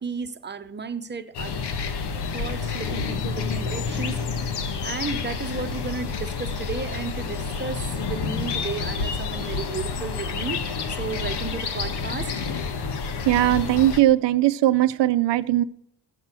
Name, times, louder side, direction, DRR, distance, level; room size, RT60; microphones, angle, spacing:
voice 1, 0.0-1.5 2.3-4.2 4.8-12.3, right 5 dB, 25° right, 0.9 m, -33 dB
sound 1, 1.3-14.0, left 5 dB, 70° left, 1.3 m, -29 dB
voice 2, 13.3-15.6, right 14 dB, 80° right, 0.7 m, -19 dB
16.0 x 6.3 x 7.4 m
cardioid pair, 120°, 41 cm